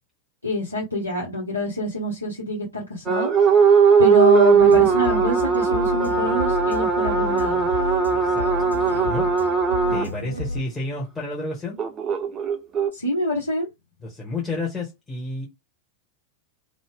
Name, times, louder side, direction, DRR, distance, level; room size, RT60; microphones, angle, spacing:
voice 1, 0.4-3.3 4.0-7.7 9.9-10.1 12.9-13.7, left 1 dB, 80° left, 0.7 m, -26 dB
sound 1, 3.1-10.1 11.8-12.9, right 6 dB, 25° right, 0.5 m, -19 dB
sound 2, 4.6-10.6, equal, 85° right, 0.5 m, -31 dB
voice 2, 8.1-8.5 8.8-9.3 9.9-11.8 14.0-15.5, left 2 dB, 10° left, 1.0 m, -31 dB
2.6 x 2.0 x 3.5 m
figure-of-eight pair, 90°, 0 cm